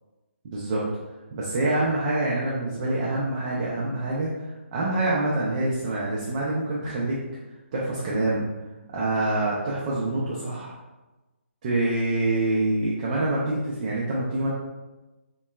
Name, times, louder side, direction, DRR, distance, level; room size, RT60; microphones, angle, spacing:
voice 1, 0.4-0.8 1.3-4.3 4.7-7.2 7.7-8.5 8.9-10.7 11.6-14.5, right 2 dB, 30° right, -6 dB, 0.4 m, -26 dB
2.9 x 2.0 x 2.2 m, 1.1 s
hypercardioid pair, 160°, 7 cm